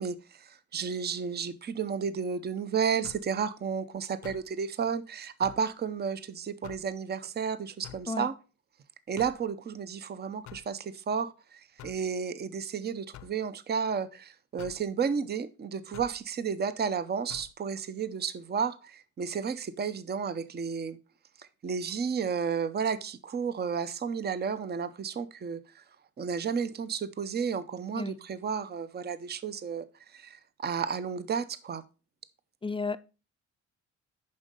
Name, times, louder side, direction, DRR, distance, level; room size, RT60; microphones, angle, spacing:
voice 1, 0.0-8.3 9.1-21.0 21.4-25.8 26.2-29.8 30.1-31.8, right 6 dB, 35° right, 0.7 m, -32 dB
sound 1, 3.0-3.3 4.2-4.5 5.4-5.7 6.6-6.9 7.8-8.1 9.2-9.4 10.4-10.7 11.8-12.0 13.1-13.4 14.6-14.8 15.9-16.2 17.3-17.5, left 11 dB, 75° left, 0.6 m, -47 dB
voice 2, 32.6-33.0, left 4 dB, 20° left, 0.5 m, -32 dB
6.9 x 5.5 x 5.2 m
cardioid pair, 90°, 30 cm